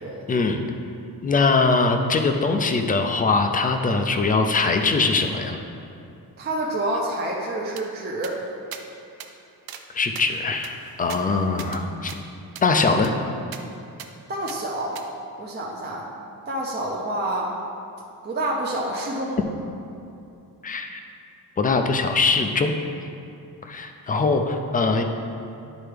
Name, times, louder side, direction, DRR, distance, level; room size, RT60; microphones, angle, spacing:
voice 1, 0.3-0.6 1.2-5.6 9.9-12.1 12.6-13.1 20.6-21.0 21.6-22.7 23.7-25.0, left 3 dB, 25° left, 5 dB, 0.3 m, -22 dB
voice 2, 6.4-8.4 14.3-15.0 15.4-16.1 16.5-17.6 18.2-19.4, right 1 dB, 25° right, -3 dB, 0.6 m, -28 dB
sound 1, 7.8-7.9 8.2-8.4 8.7-8.8 9.2-9.3 9.7-9.8 10.2-11.8 12.1-12.2 12.6-12.7 13.0-13.1 13.5-13.6 14.0-14.1 14.5-14.6 15.0-15.1, right 8 dB, 70° right, 0.6 m, -40 dB
11.0 x 4.4 x 3.4 m, 2.7 s
wide cardioid pair, 170°, 38 cm